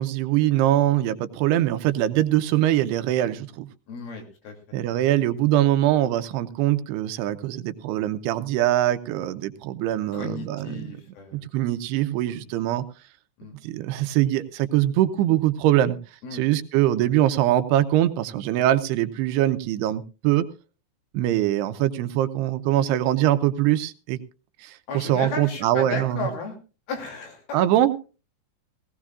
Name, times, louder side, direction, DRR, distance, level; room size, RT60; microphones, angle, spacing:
voice 1, 0.0-3.7 4.7-10.9 11.5-12.8 13.6-16.0 16.3-20.5 21.1-24.2 24.6-26.3 27.5-28.0, right 13 dB, 80° right, 11 dB, 2.8 m, -23 dB
voice 2, 3.9-4.6 10.1-11.5 12.3-12.4 13.4-13.6 16.2-16.5 24.9-26.6 26.9-27.7, left 3 dB, 65° left, 3 dB, 4.6 m, -34 dB
18.0 x 17.0 x 2.4 m, 0.33 s
omnidirectional pair, 4.7 m